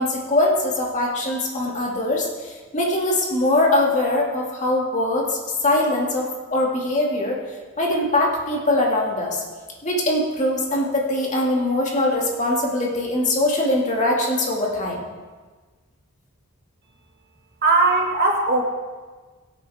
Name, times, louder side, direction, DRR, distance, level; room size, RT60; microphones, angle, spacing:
voice 1, 0.0-7.4 7.8-9.4 9.8-15.0, left 1 dB, 35° left, -2 dB, 2.4 m, -22 dB
voice 2, 17.6-18.6, right 3 dB, 50° right, 0 dB, 2.2 m, -18 dB
22.5 x 8.6 x 3.7 m, 1.4 s
head